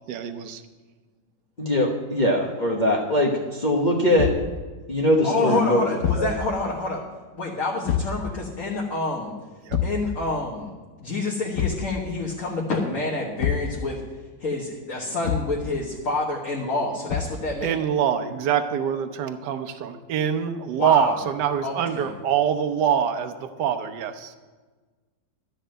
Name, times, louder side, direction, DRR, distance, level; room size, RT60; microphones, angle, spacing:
voice 1, 0.1-0.6 9.7-9.8 17.6-24.4, right 8 dB, 70° right, 7 dB, 1.4 m, -25 dB
voice 2, 1.6-4.3 4.9-5.9 6.2-6.3, left 1 dB, 30° left, -2 dB, 1.0 m, -21 dB
Thump thud, 4.2-4.5 6.0-6.4 7.9-8.2 9.7-10.1 11.5-11.9 13.4-13.7 15.2-15.6 17.1-17.4, left 8 dB, 70° left, 1.4 m, -26 dB
voice 3, 5.2-7.0 7.3-9.3 9.8-10.7 11.0-14.0 14.4-17.7 20.8-21.2 21.6-22.1, left 2 dB, 50° left, -3 dB, 1.7 m, -28 dB
12.5 x 5.5 x 9.1 m, 1.3 s
omnidirectional pair, 2.0 m